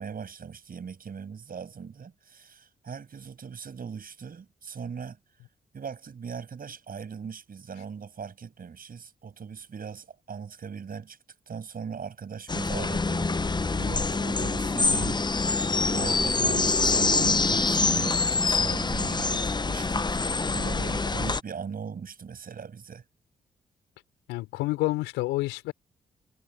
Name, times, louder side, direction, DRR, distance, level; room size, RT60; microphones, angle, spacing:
voice 1, 0.0-5.2 5.7-11.2 11.5-15.3 15.9-20.2 20.5-23.0, right 6 dB, 55° right, 7.1 m, -39 dB
sound 1, 12.5-21.4, left 3 dB, 25° left, 0.9 m, -25 dB
voice 2, 24.3-25.7, left 19 dB, 80° left, 4.4 m, -28 dB
hypercardioid pair, 40°, 18 cm